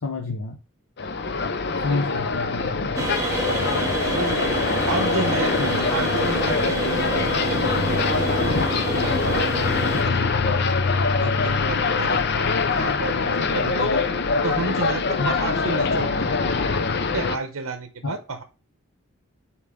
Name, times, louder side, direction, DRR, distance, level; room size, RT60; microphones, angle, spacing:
voice 1, 0.0-0.6 1.8-3.1 5.6-5.9 15.2-15.4 18.0-18.1, left 3 dB, 80° left, 3 dB, 0.8 m, -29 dB
sound 1, 1.0-17.4, left 4 dB, 50° left, 0.6 m, -23 dB
sound 2, 3.0-10.0, right 3 dB, 15° right, 1.1 m, -28 dB
voice 2, 4.1-4.5 4.9-6.8 7.1-7.7 8.0-8.6 8.9-9.6 9.9-10.7 10.9-12.2 12.7-14.0 14.4-16.4 17.1-18.4, right 4 dB, 80° right, 7 dB, 0.8 m, -31 dB
7.3 x 4.5 x 3.7 m, 0.32 s
head